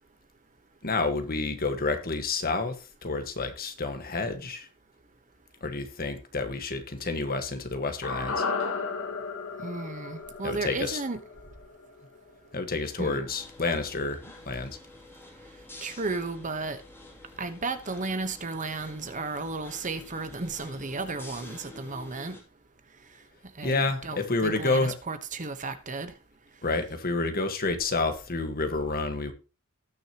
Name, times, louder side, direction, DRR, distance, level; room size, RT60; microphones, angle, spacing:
voice 1, 0.8-4.7 5.6-8.4 10.4-11.0 12.5-14.8 23.6-24.9 26.6-29.3, left 3 dB, 45° left, 1.5 m, -29 dB
sound 1, 8.0-12.3 12.6-12.7, left 4 dB, 65° left, 1.9 m, -34 dB
voice 2, 9.6-11.2 13.0-13.2 15.8-16.8 17.4-22.4 23.6-26.1, right 3 dB, 35° right, 1.1 m, -34 dB
sound 2, 13.3-22.4, left 2 dB, 10° left, 2.6 m, -49 dB
19.0 x 6.4 x 3.0 m
head